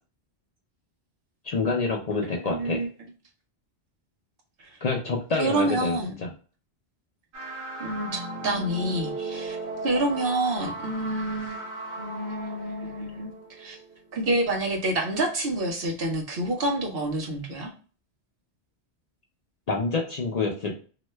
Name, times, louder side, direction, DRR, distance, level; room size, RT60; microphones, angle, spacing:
voice 1, 1.4-2.8 4.8-6.3 19.7-20.7, left 3 dB, 50° left, 0 dB, 0.5 m, -27 dB
voice 2, 2.5-2.9 4.6-4.7 5.4-6.1 7.8-9.6 9.8-11.6 11.9-13.3 13.6-13.8 14.1-17.7, right 1 dB, 60° right, 1 dB, 0.9 m, -28 dB
sound 1, 7.3-14.2, right 2 dB, 80° right, 1.1 m, -37 dB
2.9 x 2.1 x 3.1 m, 0.38 s
omnidirectional pair, 1.1 m